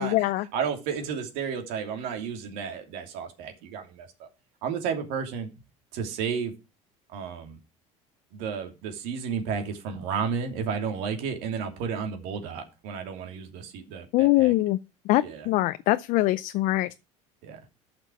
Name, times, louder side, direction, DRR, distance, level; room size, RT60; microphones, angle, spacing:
voice 1, 0.0-0.5 14.1-14.8 15.0-16.9, left 18 dB, 65° left, 0.5 m, -23 dB
voice 2, 0.5-4.3 4.6-5.5 5.9-6.5 7.1-7.6 8.3-14.5 15.2-15.5 17.4-17.6, right 6 dB, 75° right, 2.8 m, -32 dB
11.0 x 6.1 x 6.1 m
supercardioid pair, 100°, 15 cm